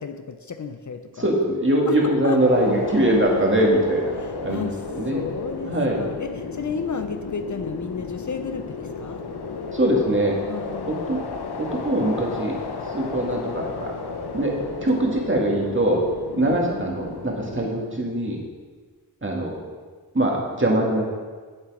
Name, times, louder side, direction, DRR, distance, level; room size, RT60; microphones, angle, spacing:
voice 1, 0.0-1.3 1.9-2.0 2.2-2.4 4.2-9.2 10.5-11.2 16.4-16.9, left 5 dB, 50° left, 7 dB, 0.6 m, -33 dB
voice 2, 1.2-5.2 5.7-6.0 9.7-10.3 10.9-11.2 11.6-12.5 12.9-13.9 14.3-14.5 14.8-16.0 16.4-18.4 19.2-19.6 20.1-21.0, right 1 dB, 30° right, -1 dB, 2.2 m, -22 dB
sound 1, 2.4-17.7, left 4 dB, 80° left, 0.8 m, -33 dB
7.6 x 7.4 x 5.0 m, 1.5 s
cardioid pair, 50°, 38 cm